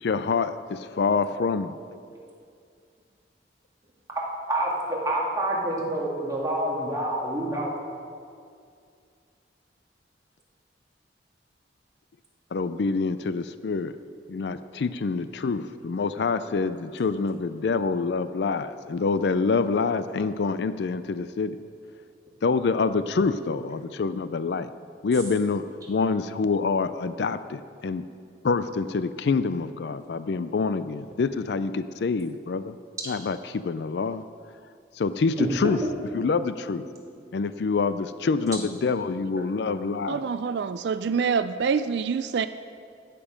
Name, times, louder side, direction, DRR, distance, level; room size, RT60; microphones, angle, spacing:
voice 1, 0.0-1.7 12.5-13.9 14.3-21.6 22.4-24.7 25.0-28.0 28.4-32.7 33.1-33.4 33.6-34.2 35.0-35.8 36.1-36.8 37.3-40.2, left 4 dB, 70° left, 13 dB, 0.4 m, -26 dB
voice 2, 4.5-7.7 14.7-14.8 35.4-35.5 36.1-36.3 37.2-37.3 38.3-38.4 39.0-39.1 39.3-40.0, right 1 dB, 20° right, -4 dB, 2.1 m, -28 dB
voice 3, 40.1-42.5, right 6 dB, 70° right, 12 dB, 0.4 m, -26 dB
15.5 x 6.9 x 5.2 m, 2.3 s
head